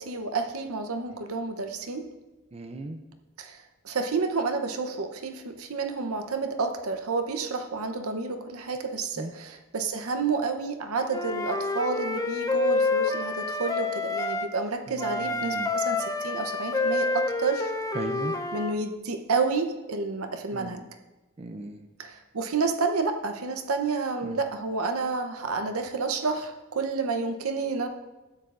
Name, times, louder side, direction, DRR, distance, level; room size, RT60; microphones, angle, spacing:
voice 1, 0.0-2.0 3.4-17.7 18.5-20.8 22.0-27.9, right 4 dB, 75° right, 6 dB, 0.8 m, -30 dB
voice 2, 2.5-3.0 9.2-9.3 14.9-15.7 17.9-18.3 20.5-20.7 21.4-21.9 24.2-24.4, right 2 dB, 30° right, 7 dB, 0.5 m, -37 dB
Wind instrument woodwind instrument, 11.1-14.5 15.0-18.8, left 3 dB, 15° left, 0.5 m, -28 dB
12.5 x 9.3 x 2.5 m, 1.1 s
head